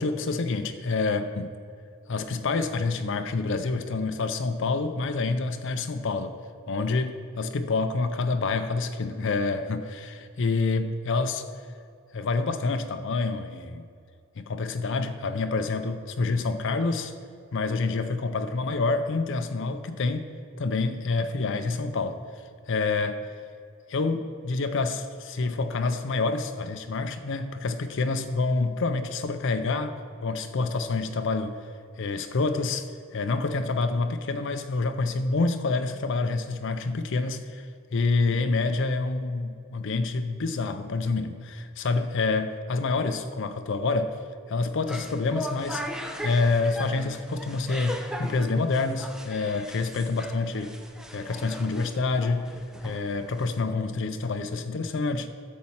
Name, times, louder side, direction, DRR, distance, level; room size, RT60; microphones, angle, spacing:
voice 1, 0.0-1.5 2.1-6.3 6.7-11.4 12.1-13.9 14.4-17.1 17.5-20.3 20.6-22.2 22.7-23.3 23.9-31.6 32.0-32.9 33.1-37.7 37.9-44.2 44.5-45.8 46.2-50.7 51.1-52.5 52.8-55.3, left 3 dB, 60° left, 8 dB, 0.5 m, -27 dB
sound 1, 44.7-53.7, equal, 5° right, 0.6 m, -39 dB
12.0 x 4.3 x 7.2 m, 2.4 s
head